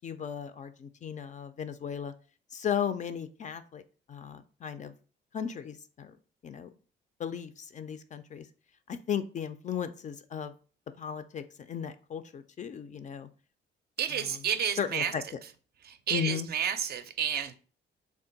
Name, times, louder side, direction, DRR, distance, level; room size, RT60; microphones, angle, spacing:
voice 1, 0.0-2.1 2.5-3.8 4.1-4.9 5.3-6.2 6.4-6.7 7.2-8.5 8.9-10.5 11.0-13.3 14.1-14.4 14.7-15.2 16.1-16.5, left 8 dB, 40° left, 0.4 m, -35 dB
voice 2, 14.0-15.1 15.9-17.5, right 8 dB, 55° right, 0.4 m, -31 dB
3.5 x 2.2 x 3.8 m
cardioid pair, 90°, 20 cm